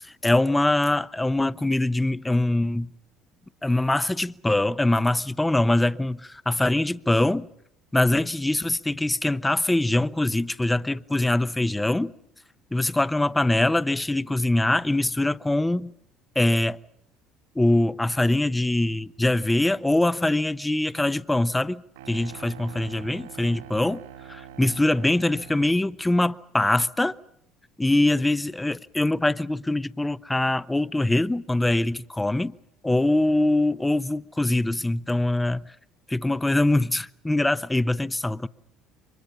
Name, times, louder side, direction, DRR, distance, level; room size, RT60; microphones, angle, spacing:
voice 1, 0.2-2.9 3.6-7.5 7.9-12.1 12.7-15.9 16.4-16.8 17.6-21.8 22.1-24.0 24.3-27.1 27.8-32.6 32.8-35.6 36.1-38.5, left 2 dB, 10° left, 0.9 m, -23 dB
sound 1, 22.0-25.9, right 10 dB, 80° right, 3.9 m, -44 dB
30.0 x 25.0 x 5.6 m
hypercardioid pair, 60°, 0 cm